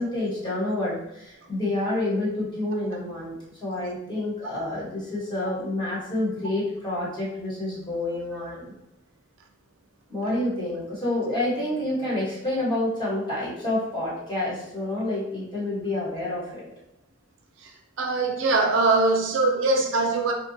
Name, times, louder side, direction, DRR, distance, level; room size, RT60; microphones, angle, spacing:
voice 1, 0.0-3.3 3.6-8.7 10.1-16.7, left 1 dB, 20° left, -9 dB, 1.2 m, -28 dB
voice 2, 17.6-20.3, right 3 dB, 65° right, 3 dB, 0.4 m, -22 dB
2.7 x 2.2 x 2.7 m, 0.81 s
head